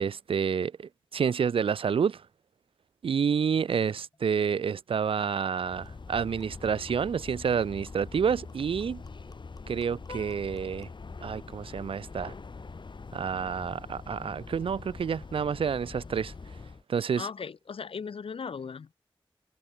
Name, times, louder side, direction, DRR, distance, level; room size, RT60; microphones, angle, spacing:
voice 1, 0.0-2.2 3.0-9.0 9.7-10.9 11.2-12.3 13.1-16.3 16.9-17.3, right 7 dB, 80° right, 0.4 m, -29 dB
sound 1, 4.1-4.2 4.5-4.7 5.1-11.1, left 3 dB, 40° left, 3.3 m, -63 dB
sound 2, 5.6-16.8, left 4 dB, 60° left, 1.5 m, -44 dB
voice 2, 17.2-18.9, left 6 dB, 90° left, 1.0 m, -37 dB
wide cardioid pair, 65°, 9 cm